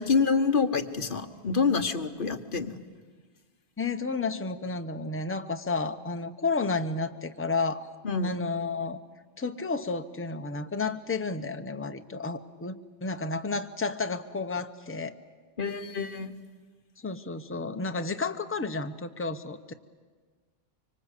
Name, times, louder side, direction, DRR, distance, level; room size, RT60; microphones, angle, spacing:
voice 1, 0.0-2.8 8.0-8.4 15.6-16.3, left 5 dB, 55° left, 7 dB, 1.3 m, -27 dB
voice 2, 3.8-7.9 8.2-9.0 9.4-15.2 17.0-19.7, left 3 dB, 15° left, 7 dB, 0.8 m, -31 dB
25.0 x 24.5 x 8.3 m, 1.4 s
omnidirectional pair, 1.1 m